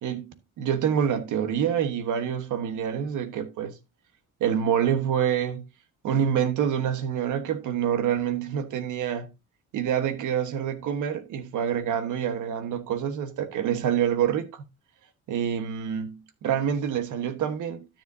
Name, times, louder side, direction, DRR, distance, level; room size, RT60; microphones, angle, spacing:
voice 1, 0.6-3.7 4.4-5.6 6.0-9.3 9.7-14.6 15.3-17.8, right 9 dB, 80° right, 1.3 m, -26 dB
12.5 x 7.3 x 2.7 m
cardioid pair, 90°, 30 cm